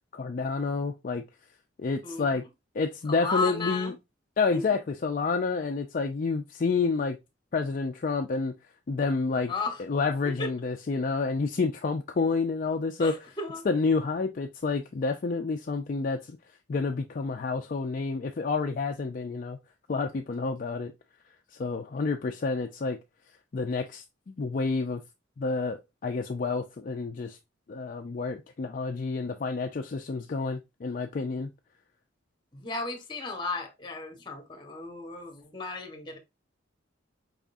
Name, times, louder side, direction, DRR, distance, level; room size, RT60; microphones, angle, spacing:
voice 1, 0.1-1.2 1.8-2.4 2.7-3.9 4.4-7.2 7.5-8.5 8.9-9.5 9.8-13.1 13.7-16.4 16.7-19.6 19.9-20.9 21.5-23.0 23.5-25.0 25.4-27.4 27.7-31.5, left 4 dB, 45° left, 0.4 m, -29 dB
voice 2, 2.0-2.4 3.1-3.9 4.5-4.7 9.5-9.8 10.4-10.5 13.0-13.7 32.5-36.2, left 3 dB, 25° left, 1.0 m, -34 dB
4.8 x 3.6 x 2.5 m
head